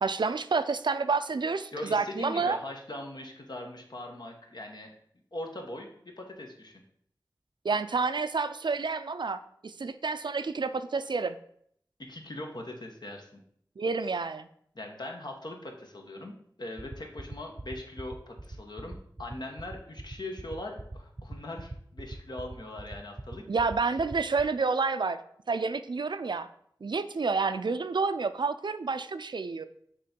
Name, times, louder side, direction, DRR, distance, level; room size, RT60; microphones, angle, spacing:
voice 1, 0.0-2.6 7.6-11.4 13.8-14.5 23.5-25.2 25.5-26.5 26.8-29.7, right 4 dB, 75° right, 12 dB, 0.4 m, -29 dB
voice 2, 1.7-4.9 5.3-6.8 12.0-13.4 14.7-23.4, left 1 dB, 65° left, 2 dB, 1.1 m, -41 dB
sound 1, 16.8-24.4, right 2 dB, 25° right, 0.7 m, -40 dB
6.7 x 3.1 x 5.1 m, 0.67 s
wide cardioid pair, 45°, 8 cm